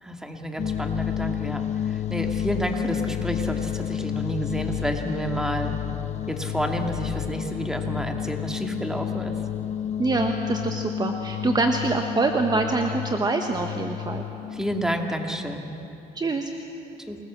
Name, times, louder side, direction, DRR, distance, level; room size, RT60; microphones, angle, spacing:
voice 1, 0.0-5.8 6.3-9.4 14.5-15.7 17.1-17.2, equal, 5° right, 3 dB, 2.4 m, -30 dB
sound 1, 0.6-15.1, left 10 dB, 45° left, 0.6 m, -30 dB
voice 2, 10.0-14.2 16.1-16.5, right 3 dB, 25° right, 4 dB, 1.4 m, -25 dB
28.0 x 20.5 x 7.6 m, 2.8 s
cardioid pair, 110°, 17 cm